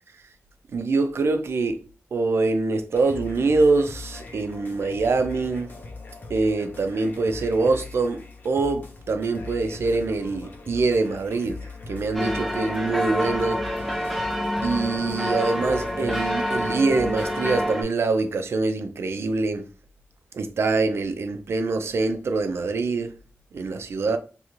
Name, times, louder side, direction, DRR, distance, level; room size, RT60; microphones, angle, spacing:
voice 1, 0.7-1.8 2.1-5.7 6.3-8.2 8.4-11.6 11.9-13.6 14.0-14.2 14.6-19.6 20.3-23.1 23.5-24.2, right 3 dB, 70° right, 0.4 m, -24 dB
sound 1, 2.9-17.6, left 3 dB, 50° left, 0.7 m, -41 dB
sound 2, 12.1-17.8, equal, ahead, 0.5 m, -27 dB
3.0 x 2.5 x 3.0 m
wide cardioid pair, 140°, 4 cm